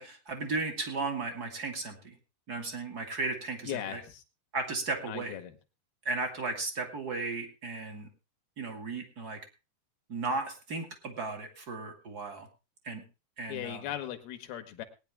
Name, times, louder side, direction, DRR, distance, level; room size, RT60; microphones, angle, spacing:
voice 1, 0.0-2.2 2.5-4.0 4.5-5.4 6.0-8.1 8.6-9.4 10.1-12.5 12.8-13.0 13.4-13.9, right 3 dB, 30° right, 4 dB, 2.0 m, -35 dB
voice 2, 3.6-4.2 5.1-5.5 13.5-14.8, left 11 dB, 75° left, 8 dB, 3.2 m, -38 dB
19.5 x 10.0 x 3.5 m, 0.30 s
omnidirectional pair, 4.5 m